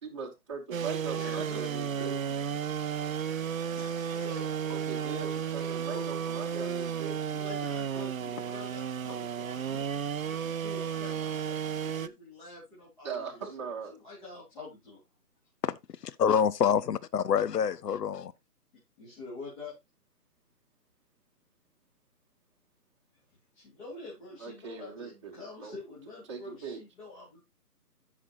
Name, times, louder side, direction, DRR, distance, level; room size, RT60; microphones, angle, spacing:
voice 1, 0.0-2.2 4.7-7.3 13.0-13.9 24.4-25.7 26.3-26.8, right 6 dB, 20° right, 1.2 m, -40 dB
sound 1, 0.7-12.1, right 8 dB, 60° right, 0.5 m, -33 dB
voice 2, 1.1-2.4 3.7-5.2 5.7-6.2 7.2-9.9 10.2-13.6 13.9-15.0 19.0-19.7 23.5-27.4, left 3 dB, 30° left, 3.5 m, -46 dB
voice 3, 16.0-18.3, left 7 dB, 80° left, 0.8 m, -26 dB
12.5 x 6.0 x 2.5 m
hypercardioid pair, 170°, 47 cm